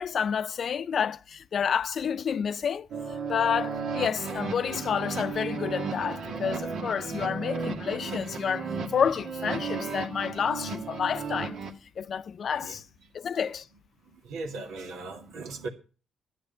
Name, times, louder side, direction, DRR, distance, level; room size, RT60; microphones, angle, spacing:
voice 1, 0.0-2.9 3.3-8.7 8.9-11.5 12.0-12.8 13.1-13.7, left 7 dB, 55° left, 0.5 m, -29 dB
sound 1, 2.9-11.7, right 5 dB, 70° right, 2.0 m, -34 dB
voice 2, 14.0-15.7, right 3 dB, 85° right, 2.3 m, -39 dB
12.0 x 9.7 x 5.5 m
cardioid pair, 90°, 0 cm